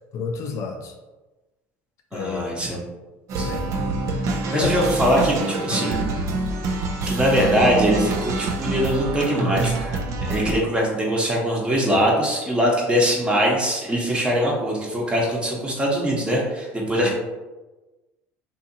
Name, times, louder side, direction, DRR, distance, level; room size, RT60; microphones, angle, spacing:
voice 1, 0.1-0.9 2.1-2.5 3.4-3.7 4.1-4.8 5.7-5.9 17.0-17.1, left 5 dB, 55° left, 2 dB, 0.4 m, -30 dB
voice 2, 2.1-2.8 3.4-3.5 4.5-6.1 7.1-17.1, equal, 15° right, -3 dB, 0.9 m, -22 dB
sound 1, 3.3-10.5, right 3 dB, 55° right, 0.4 m, -26 dB
2.7 x 2.7 x 2.6 m, 1.1 s
supercardioid pair, 90°, 6 cm